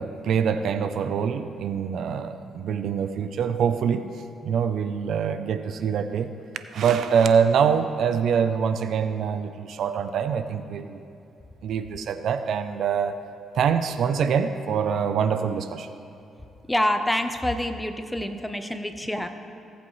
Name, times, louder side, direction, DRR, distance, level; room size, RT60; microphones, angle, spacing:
voice 1, 0.0-4.0 4.4-6.3 6.7-11.0 11.6-13.2 13.6-15.9, right 7 dB, 70° right, 9 dB, 0.5 m, -24 dB
voice 2, 16.7-19.3, left 1 dB, 5° left, 7 dB, 0.7 m, -26 dB
17.5 x 8.0 x 3.2 m, 2.8 s
cardioid pair, 90°, 0 cm